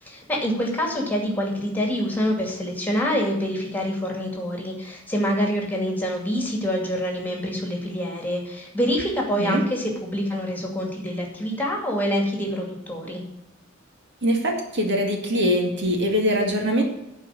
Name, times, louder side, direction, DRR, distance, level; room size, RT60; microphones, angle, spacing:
voice 1, 0.0-13.2, equal, 10° left, 0 dB, 2.4 m, -26 dB
voice 2, 14.2-16.8, equal, 60° right, 2 dB, 2.1 m, -22 dB
11.5 x 4.7 x 8.3 m, 0.89 s
head